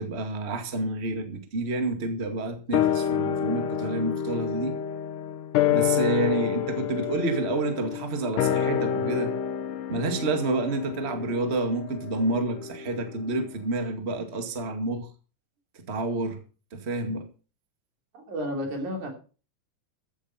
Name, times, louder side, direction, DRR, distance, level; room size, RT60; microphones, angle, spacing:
voice 1, 0.0-4.8 5.7-9.3 9.9-15.1 15.7-16.4 16.7-17.3, right 2 dB, 25° right, 1.9 m, -29 dB
sound 1, 2.7-13.3 13.6-13.7, left 9 dB, 90° left, 2.7 m, -28 dB
voice 2, 18.1-19.1, equal, 75° right, 4.5 m, -32 dB
15.0 x 8.5 x 5.8 m
omnidirectional pair, 3.6 m